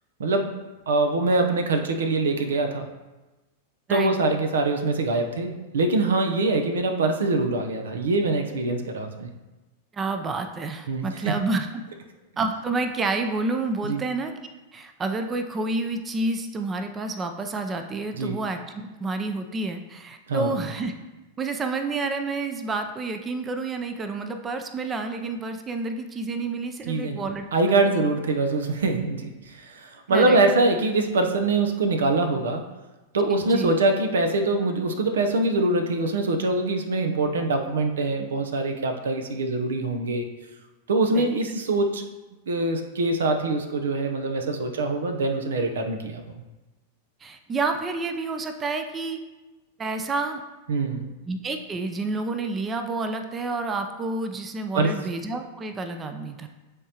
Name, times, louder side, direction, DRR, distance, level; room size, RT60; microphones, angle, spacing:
voice 1, 0.2-0.6 0.9-2.9 3.9-9.3 10.9-11.3 13.8-14.0 18.1-18.4 20.3-20.7 26.9-27.2 27.5-32.7 33.1-40.3 40.9-42.0 42.5-46.4 50.7-51.1 54.7-55.0, right 2 dB, 80° right, 5 dB, 0.7 m, -24 dB
voice 2, 9.9-11.7 12.4-14.3 14.7-20.9 21.4-27.4 30.1-30.4 33.3-33.8 41.1-41.2 47.2-49.2 49.8-50.4 51.3-56.5, right 3 dB, 25° right, 6 dB, 0.5 m, -29 dB
9.8 x 3.6 x 2.9 m, 1.1 s
hypercardioid pair, 105°, 0 cm